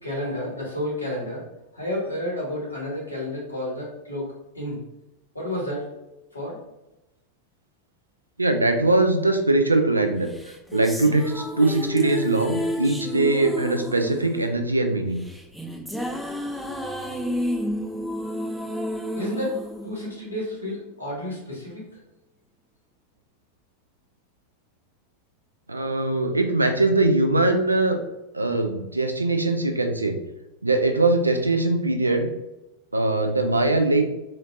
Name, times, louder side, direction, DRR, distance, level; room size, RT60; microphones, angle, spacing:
voice 1, 0.0-1.4 1.7-4.8 5.3-5.8 6.3-6.6 19.1-21.8, left 1 dB, 85° left, -3 dB, 1.4 m, -31 dB
voice 2, 8.4-10.3 10.7-15.2 25.7-28.0 28.3-30.2 30.6-32.3 32.9-34.0, right 2 dB, 80° right, 6 dB, 0.4 m, -21 dB
sound 1, 10.3-20.8, equal, ahead, 0.3 m, -31 dB
4.3 x 2.5 x 2.6 m, 0.96 s
figure-of-eight pair, 90°, 0 cm